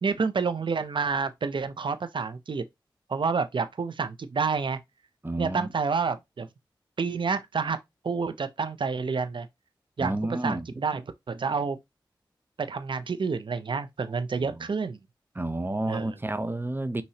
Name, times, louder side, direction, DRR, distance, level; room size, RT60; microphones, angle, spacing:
voice 1, 0.0-2.6 3.1-4.8 5.4-6.5 7.0-7.8 8.0-9.5 10.0-10.1 10.4-11.0 11.3-11.8 12.6-15.0 15.9-16.1, right 5 dB, 70° right, 0.6 m, -28 dB
voice 2, 5.2-5.7 10.0-10.8 14.4-14.7 15.3-17.0, right 2 dB, 25° right, 0.8 m, -31 dB
5.7 x 3.0 x 2.8 m
cardioid pair, 40°, 9 cm